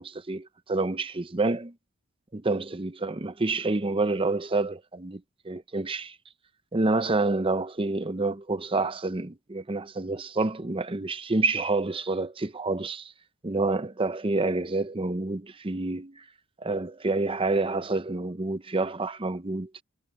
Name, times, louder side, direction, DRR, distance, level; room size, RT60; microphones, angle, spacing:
voice 1, 0.0-1.7 2.3-6.2 6.7-13.1 13.4-16.2 16.6-19.7, right 3 dB, 25° right, 0.7 m, -28 dB
head